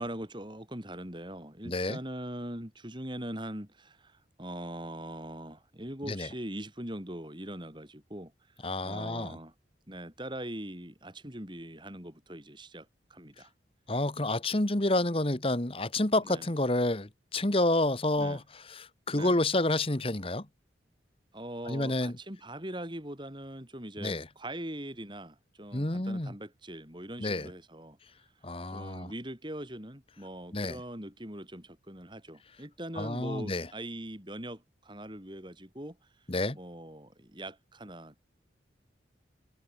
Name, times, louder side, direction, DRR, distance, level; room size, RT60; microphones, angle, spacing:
voice 1, 0.0-8.3 8.8-9.5 9.9-13.5 14.2-14.4 16.2-16.5 18.2-18.4 19.1-19.4 21.3-28.0 28.7-36.3 36.5-38.2, right 1 dB, 25° right, 6.1 m, -41 dB
voice 2, 1.6-2.0 6.1-6.3 8.6-9.4 13.9-18.4 18.7-20.4 21.7-22.1 24.0-24.2 25.7-26.3 27.2-27.5 28.4-29.1 30.5-30.8 33.0-33.7 36.3-36.6, left 2 dB, 30° left, 1.5 m, -29 dB
head